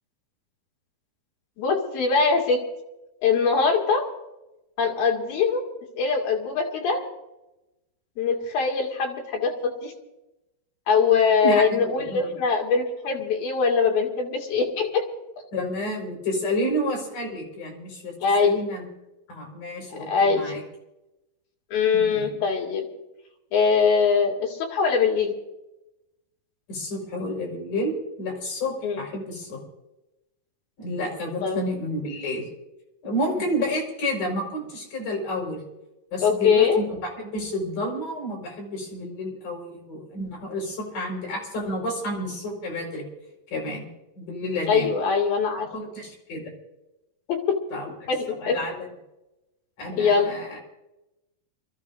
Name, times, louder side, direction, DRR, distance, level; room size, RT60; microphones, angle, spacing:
voice 1, 1.6-2.6 3.2-4.1 4.8-5.6 6.0-7.0 8.2-9.9 10.9-15.0 18.2-18.6 20.1-20.5 21.7-22.9 23.5-25.3 28.8-29.0 31.4-31.6 36.2-36.8 44.7-45.7 47.3-47.6 48.1-48.6 50.0-50.3, left 5 dB, 75° left, 0 dB, 4.2 m, -22 dB
voice 2, 11.4-12.4 15.5-18.9 19.3-20.6 21.9-22.4 26.7-29.6 30.8-32.5 33.0-35.6 36.1-36.7 37.0-43.1 43.5-43.8 44.2-44.9 45.7-46.5 47.7-48.1 48.4-48.9 49.8-50.6, left 1 dB, 60° left, -1 dB, 6.5 m, -30 dB
28.0 x 14.5 x 2.7 m, 0.96 s
omnidirectional pair, 4.2 m